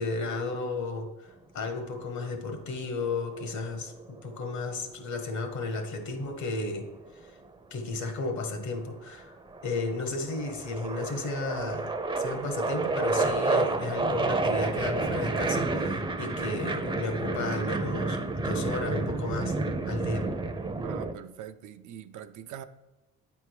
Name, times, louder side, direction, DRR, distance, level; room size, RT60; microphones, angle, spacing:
voice 1, 0.0-6.9 7.2-7.3 7.7-9.3 9.6-19.5 19.9-20.3, left 3 dB, 70° left, 1.3 m, -33 dB
sound 1, 3.2-4.4 6.2-7.5 8.4-8.9 9.2-21.1, right 3 dB, 15° right, 0.5 m, -30 dB
voice 2, 20.8-22.6, right 10 dB, 75° right, 0.5 m, -43 dB
8.9 x 3.6 x 4.7 m
cardioid pair, 90°, 30 cm